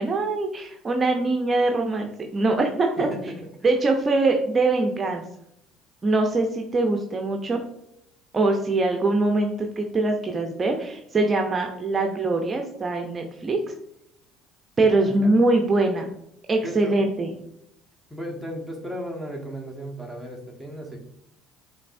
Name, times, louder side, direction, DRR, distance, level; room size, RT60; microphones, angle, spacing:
voice 1, 0.0-3.1 3.6-5.2 6.0-7.6 8.3-13.6 14.8-16.1 16.5-17.3, right 2 dB, 30° right, 3 dB, 0.6 m, -23 dB
voice 2, 3.0-3.4 15.0-15.3 16.6-17.0 18.1-21.0, equal, 5° left, 1 dB, 1.2 m, -35 dB
5.2 x 3.3 x 2.6 m, 0.76 s
hypercardioid pair, 70°, 0 cm